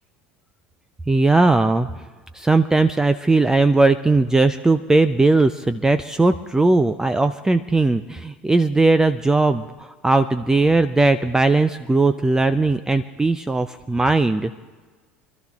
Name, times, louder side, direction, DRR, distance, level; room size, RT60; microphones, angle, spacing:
voice 1, 1.1-2.0 2.3-14.5, right 3 dB, 10° right, 11 dB, 0.5 m, -18 dB
27.0 x 12.5 x 2.4 m, 1.4 s
figure-of-eight pair, 70°, 6 cm